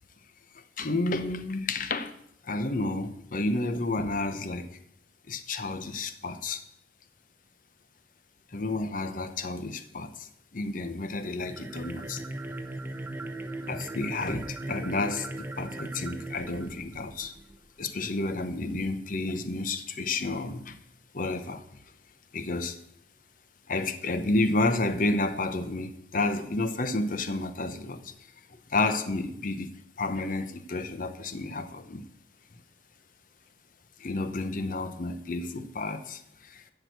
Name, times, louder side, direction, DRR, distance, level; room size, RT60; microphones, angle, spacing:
voice 1, 0.8-2.1 2.4-4.7 5.3-6.6 8.5-12.2 13.6-17.3 17.8-20.8 21.1-21.8 22.3-22.8 23.7-29.7 30.0-32.0 34.0-36.6, left 2 dB, 50° left, 0.8 m, -31 dB
sound 1, 11.4-17.6, right 2 dB, 10° right, 0.7 m, -38 dB
12.0 x 4.9 x 7.9 m
head